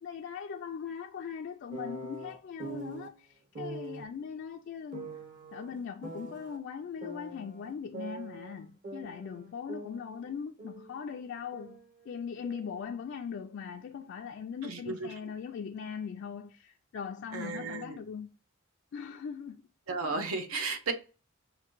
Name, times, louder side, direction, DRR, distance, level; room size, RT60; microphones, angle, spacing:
voice 1, 0.0-5.2 5.5-11.8 12.1-18.3 18.9-19.6, left 6 dB, 55° left, 0.3 m, -40 dB
sound 1, 1.7-3.1 3.5-4.1 4.9-6.6 7.0-8.6 8.8-11.0 11.3-12.8, right 2 dB, 40° right, 0.7 m, -43 dB
voice 2, 14.6-15.3 17.3-18.0 19.9-20.9, right 3 dB, 85° right, 0.7 m, -34 dB
5.8 x 2.6 x 3.0 m
head